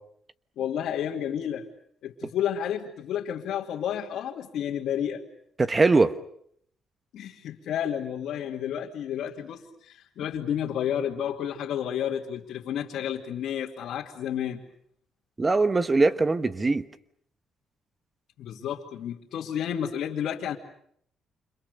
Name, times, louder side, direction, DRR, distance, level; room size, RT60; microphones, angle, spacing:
voice 1, 0.6-1.7 2.0-5.2 7.1-14.6 18.4-20.6, left 9 dB, 75° left, -3 dB, 2.6 m, -31 dB
voice 2, 5.6-6.1 15.4-16.8, right 3 dB, 25° right, 12 dB, 1.3 m, -21 dB
29.5 x 27.0 x 6.8 m, 0.67 s
cardioid pair, 90°, 0 cm